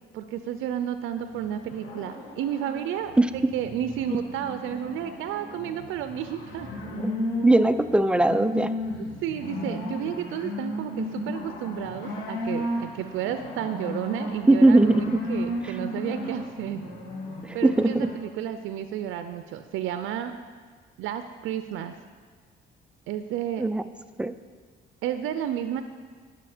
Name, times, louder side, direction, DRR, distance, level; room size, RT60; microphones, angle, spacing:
voice 1, 0.1-3.1 3.5-6.7 9.2-16.8 17.5-20.4 21.0-21.9 23.1-23.7 25.0-25.8, right 10 dB, 90° right, 9 dB, 0.5 m, -31 dB
sound 1, 1.2-18.2, left 1 dB, 85° left, 2.0 m, -35 dB
voice 2, 7.4-8.7 14.5-15.2 17.6-18.1 23.6-23.8 24.2-24.3, right 2 dB, 5° right, 11 dB, 0.3 m, -19 dB
11.0 x 5.1 x 5.0 m, 1.5 s
cardioid pair, 90°, 20 cm